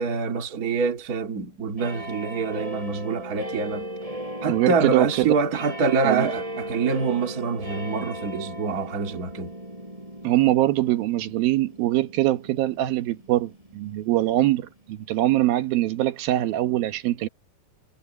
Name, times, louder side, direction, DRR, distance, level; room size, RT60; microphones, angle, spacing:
voice 1, 0.0-3.9 4.4-9.5, right 5 dB, 30° right, 2.1 m, -26 dB
sound 1, 1.8-14.7 15.3-15.4, equal, 10° right, 8.0 m, -37 dB
voice 2, 4.5-5.3 6.0-6.3 10.2-17.3, right 15 dB, 85° right, 2.9 m, -23 dB
omnidirectional pair, 4.1 m